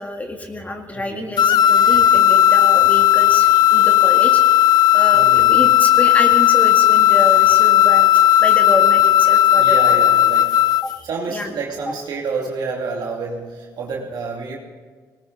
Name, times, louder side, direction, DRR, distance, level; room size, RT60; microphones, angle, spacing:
voice 1, 0.0-4.7 4.9-8.1 8.4-10.1 10.8-11.5 11.9-12.0, left 1 dB, 20° left, 3 dB, 2.1 m, -27 dB
voice 2, 0.9-1.3 5.1-5.6 9.6-10.5 11.0-14.6, right 4 dB, 70° right, -2 dB, 2.6 m, -29 dB
sound 1, 1.4-11.0, left 12 dB, 65° left, 0.4 m, -14 dB
19.0 x 18.5 x 4.0 m, 1.5 s
cardioid pair, 80°, 8 cm